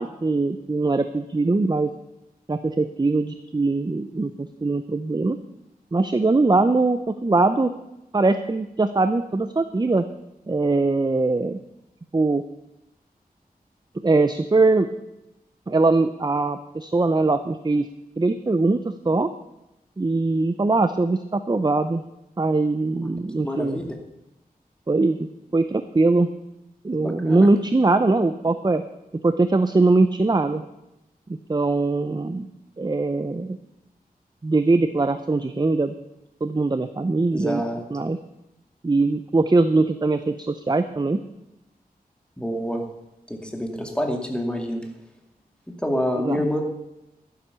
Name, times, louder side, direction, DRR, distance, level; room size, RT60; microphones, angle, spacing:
voice 1, 0.0-1.9 2.5-5.4 5.9-7.7 8.1-10.0 10.5-11.6 12.1-12.4 14.0-14.9 15.7-17.9 18.2-19.3 20.0-22.0 22.4-23.8 24.9-26.3 26.8-28.8 29.2-30.6 31.3-32.5 32.8-33.6 34.4-35.9 36.4-37.6 37.9-38.2 38.8-41.2 46.2-46.5, right 3 dB, 25° right, 10 dB, 0.6 m, -21 dB
voice 2, 23.4-23.8 27.0-27.5 37.3-37.8 42.4-42.8 43.3-44.8 45.8-46.6, equal, 5° left, 3 dB, 2.3 m, -27 dB
12.0 x 9.9 x 6.9 m, 0.92 s
wide cardioid pair, 85°, 16 cm